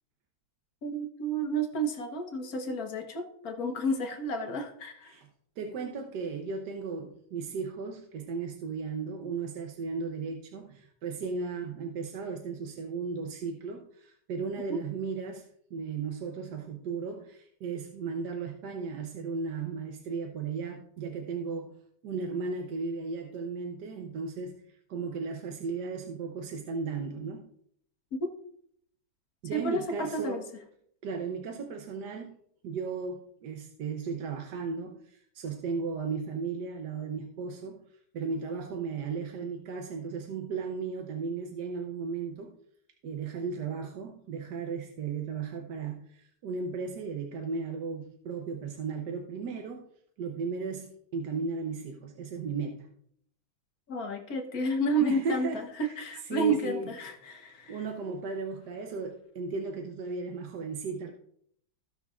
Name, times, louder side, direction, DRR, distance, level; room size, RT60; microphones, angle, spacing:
voice 1, 0.8-5.2 14.7-14.8 28.2-28.3 29.5-30.4 53.9-57.8, right 2 dB, 55° left, 5 dB, 1.5 m, -31 dB
voice 2, 5.6-21.8 22.0-27.4 29.4-30.4 31.0-32.3 32.6-37.8 38.1-42.5 43.0-49.9 50.2-52.9 55.0-56.0 56.2-56.9 57.4-61.1, right 5 dB, 70° right, 3 dB, 1.3 m, -35 dB
16.0 x 6.0 x 2.4 m, 0.66 s
omnidirectional pair, 2.0 m